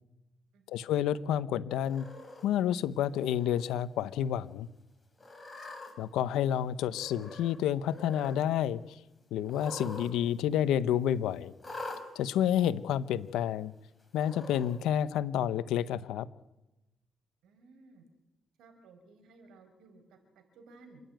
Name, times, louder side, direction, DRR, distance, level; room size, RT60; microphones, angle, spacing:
voice 1, 0.7-2.1 2.4-4.7 6.0-9.0 9.3-11.5 12.1-13.7 14.1-16.3, left 10 dB, 90° left, 15 dB, 0.8 m, -29 dB
Cat, 1.8-2.4 3.2-3.6 4.0-4.1 5.2-5.9 6.9-7.6 7.8-8.4 9.4-10.1 10.4-10.5 11.6-12.0 12.9-13.0 14.1-14.7, left 2 dB, 15° left, 4.2 m, -44 dB
voice 2, 17.4-18.0 18.6-21.0, right 3 dB, 80° right, 6 dB, 4.9 m, -57 dB
27.5 x 11.0 x 9.1 m, 0.98 s
cardioid pair, 90°, 0 cm